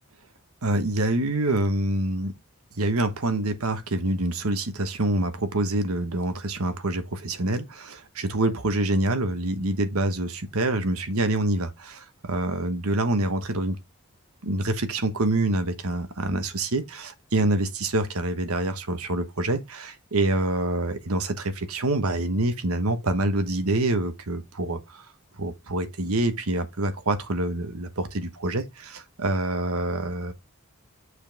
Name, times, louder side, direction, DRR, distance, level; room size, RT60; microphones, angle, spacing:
voice 1, 0.6-2.3 2.7-13.8 14.4-25.0 25.4-30.3, right 2 dB, 80° right, 1.2 m, -26 dB
6.6 x 5.3 x 3.5 m
head